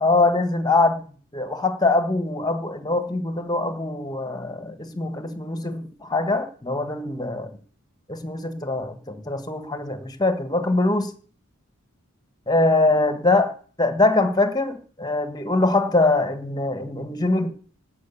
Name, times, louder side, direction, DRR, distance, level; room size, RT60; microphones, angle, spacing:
voice 1, 0.0-1.0 1.3-7.5 8.1-11.1 12.5-13.5 13.8-17.5, left 2 dB, 20° left, 1.3 m, -23 dB
12.5 x 7.7 x 8.4 m
head